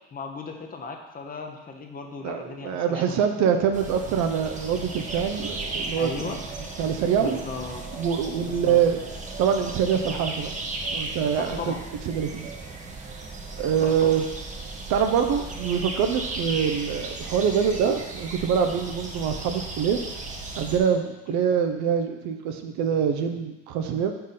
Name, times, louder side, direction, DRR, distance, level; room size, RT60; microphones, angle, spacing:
voice 1, 0.1-3.3 6.0-6.4 7.2-7.8 8.5-8.8 11.3-11.8 13.8-14.1, left 4 dB, 25° left, 3 dB, 0.9 m, -36 dB
voice 2, 2.2-6.4 6.8-7.4 8.0-9.0 9.4-10.5 10.9-11.7 12.1-12.5 13.6-14.2 14.9-20.0 20.6-24.1, right 7 dB, 55° right, 6 dB, 0.8 m, -24 dB
sound 1, 3.7-20.8, right 2 dB, 20° right, 0.9 m, -36 dB
4.9 x 4.5 x 5.5 m, 1.0 s
supercardioid pair, 105°, 34 cm